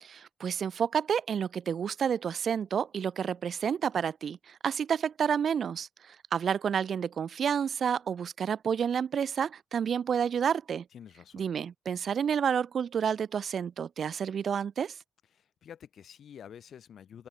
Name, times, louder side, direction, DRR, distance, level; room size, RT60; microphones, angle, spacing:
voice 1, 0.0-10.8 11.3-14.9, right 7 dB, 65° right, 1.0 m, -30 dB
voice 2, 10.9-11.4 15.3-17.3, left 8 dB, 75° left, 2.3 m, -49 dB
open air
cardioid pair, 65°, 0 cm